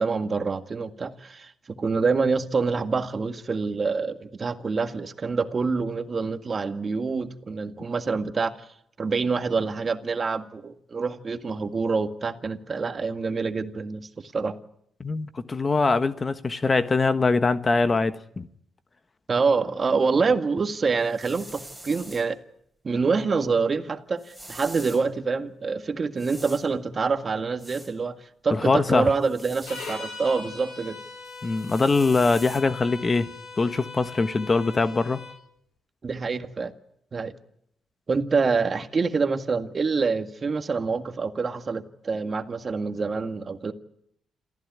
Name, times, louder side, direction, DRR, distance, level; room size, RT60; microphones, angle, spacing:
voice 1, 0.0-8.7 9.0-14.6 19.3-22.4 22.8-31.0 36.0-36.7 37.1-37.3 38.1-43.7, right 4 dB, 35° right, 1.8 m, -26 dB
voice 2, 15.0-18.5 28.5-29.1 31.4-33.3 33.6-35.2, left 3 dB, 30° left, 1.3 m, -23 dB
sound 1, 21.0-22.3 24.2-25.1 26.2-26.7 27.6-27.9 29.2-30.0 31.2-32.6, right 1 dB, ahead, 6.6 m, -44 dB
sound 2, 29.6-35.4, left 4 dB, 70° left, 6.2 m, -40 dB
28.0 x 14.5 x 9.5 m
cardioid pair, 90°, 0 cm